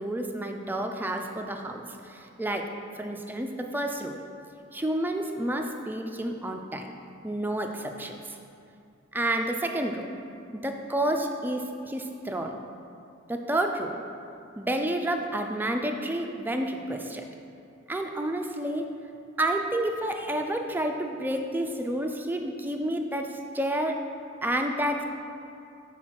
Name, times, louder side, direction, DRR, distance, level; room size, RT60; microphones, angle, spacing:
voice 1, 0.0-2.7 3.0-4.2 4.7-6.9 7.2-8.4 9.1-10.1 10.5-12.6 13.3-14.0 14.6-17.3 17.9-18.9 19.4-24.0 24.4-25.0, right 1 dB, 10° right, 3 dB, 0.4 m, -30 dB
5.8 x 4.1 x 6.2 m, 2.5 s
head